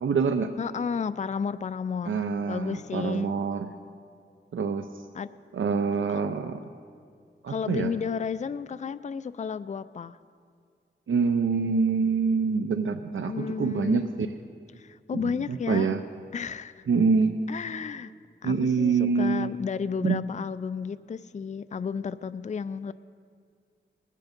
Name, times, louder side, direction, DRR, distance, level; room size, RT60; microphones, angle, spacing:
voice 1, 0.0-0.5 2.1-3.7 4.5-4.9 5.5-6.6 7.4-7.9 11.1-14.3 15.1-16.0 16.9-17.4 18.4-19.5 20.0-20.2, right 5 dB, 90° right, 8 dB, 0.5 m, -25 dB
voice 2, 0.6-3.3 5.1-5.3 6.1-6.2 7.5-10.2 13.2-14.0 14.8-15.9 16.3-16.8 17.5-18.1 18.4-22.9, left 6 dB, 40° left, 14 dB, 0.4 m, -32 dB
20.5 x 8.4 x 5.2 m, 2.2 s
wide cardioid pair, 90°, 20 cm